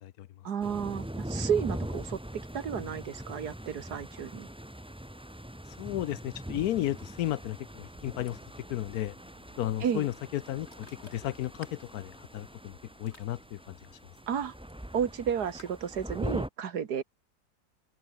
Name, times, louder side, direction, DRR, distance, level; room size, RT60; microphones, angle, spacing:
voice 1, 0.4-4.5 9.8-10.1 14.3-14.5 14.9-17.0, right 7 dB, 75° right, 2.0 m, -32 dB
sound 1, 0.6-16.5, right 1 dB, 5° right, 1.1 m, -41 dB
Ocean, 5.7-15.7, left 2 dB, 40° left, 5.3 m, -59 dB
voice 2, 5.8-8.4 8.7-9.1 9.6-13.8, left 13 dB, 70° left, 1.1 m, -34 dB
omnidirectional pair, 1.7 m